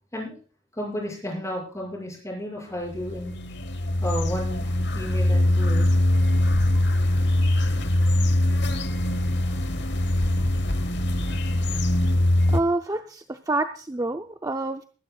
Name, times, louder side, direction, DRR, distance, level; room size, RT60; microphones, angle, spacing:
voice 1, 0.8-3.3 4.0-5.9 9.4-9.6, equal, 15° left, -1 dB, 6.3 m, -33 dB
sound 1, 2.9-12.6, left 1 dB, 60° left, 1.1 m, -22 dB
voice 2, 12.5-14.8, right 2 dB, 20° right, 7 dB, 0.6 m, -27 dB
22.0 x 12.0 x 2.3 m, 0.38 s
head